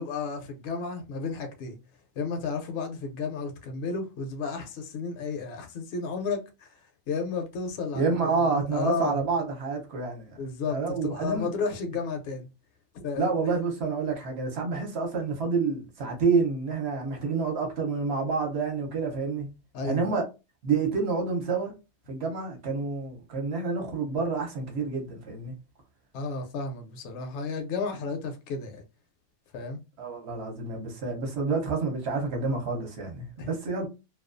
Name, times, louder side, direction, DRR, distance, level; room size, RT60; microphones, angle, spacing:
voice 1, 0.0-1.8 2.2-6.8 7.1-9.2 10.4-12.5 13.0-13.3 19.7-20.1 26.1-28.8 29.5-29.8 33.4-33.5, left 4 dB, 65° left, 0.7 m, -32 dB
voice 2, 7.9-10.4 10.7-11.5 13.2-19.5 19.8-20.2 20.6-21.7 22.1-25.5 30.0-33.9, right 4 dB, 60° right, 0.9 m, -28 dB
2.3 x 2.2 x 2.4 m
omnidirectional pair, 1.4 m